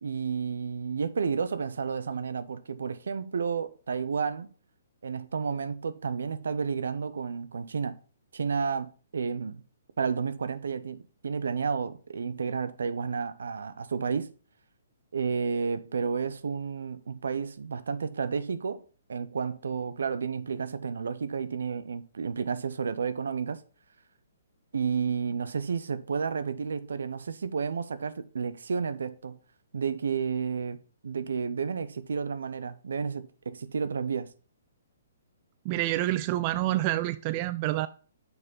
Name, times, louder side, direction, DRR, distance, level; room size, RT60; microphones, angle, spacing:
voice 1, 0.0-4.5 5.0-8.0 8.3-9.6 10.0-14.3 15.1-23.6 24.7-29.4 29.7-34.3, right 6 dB, 70° right, 0.6 m, -31 dB
voice 2, 35.7-37.9, right 16 dB, 35° right, 0.3 m, -27 dB
6.8 x 4.3 x 5.2 m
figure-of-eight pair, 130°, 0 cm